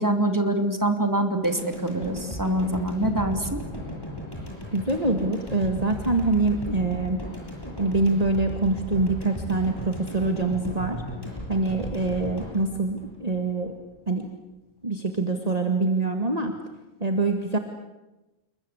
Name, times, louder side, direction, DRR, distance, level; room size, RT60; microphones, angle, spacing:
voice 1, 0.0-3.6, right 1 dB, 15° right, 6 dB, 2.6 m, -25 dB
sound 1, 1.4-13.7 14.0-14.1, equal, 15° left, 8.2 m, -36 dB
voice 2, 4.7-7.2 7.8-11.0 11.5-13.7 14.1-14.3 14.8-16.5 17.0-17.6, right 3 dB, 30° right, 5 dB, 2.0 m, -25 dB
28.5 x 22.5 x 8.0 m, 1.0 s
omnidirectional pair, 1.3 m